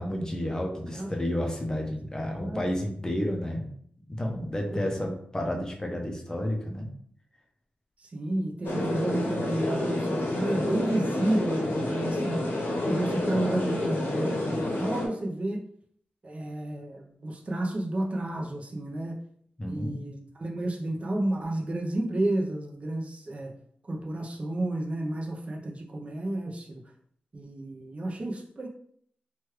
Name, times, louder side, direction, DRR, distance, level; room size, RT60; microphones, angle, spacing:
voice 1, 0.0-3.7 4.1-6.9 19.6-20.0, left 1 dB, 20° left, 1 dB, 0.5 m, -31 dB
voice 2, 2.2-2.8 4.7-4.9 8.0-12.5 12.9-15.6 16.2-19.2 19.7-23.5 23.9-26.8 27.3-28.7, right 1 dB, 35° right, 0 dB, 0.5 m, -31 dB
sound 1, 8.6-15.1, left 1 dB, 70° left, 0.8 m, -29 dB
3.0 x 2.3 x 3.1 m, 0.62 s
wide cardioid pair, 100°, 4 cm